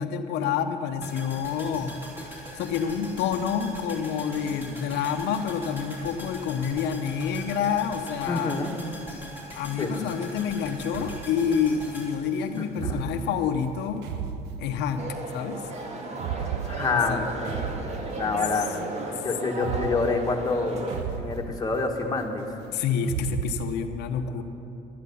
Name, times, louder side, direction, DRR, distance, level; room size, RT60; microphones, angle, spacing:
voice 1, 0.0-1.9 2.5-8.6 9.5-14.1 14.6-15.1 15.3-15.6 16.9-17.3 22.7-24.4, left 7 dB, 85° left, 6 dB, 0.8 m, -28 dB
sound 1, 1.0-13.2 13.5-13.6, equal, 10° right, 3.4 m, -41 dB
voice 2, 8.3-8.7 9.8-9.9 12.8-13.1 16.6-17.5 18.1-18.7 19.1-20.8 21.2-22.5 24.3-24.4, left 3 dB, 20° left, 1 dB, 1.4 m, -27 dB
sound 2, 10.9-11.7 12.7-15.2 16.1-18.7 19.5-22.1 23.0-23.8, right 8 dB, 80° right, 0.6 m, -35 dB
sound 3, 15.0-21.0, right 2 dB, 40° right, 1.7 m, -35 dB
12.0 x 10.0 x 6.8 m, 2.8 s
cardioid pair, 110°, 17 cm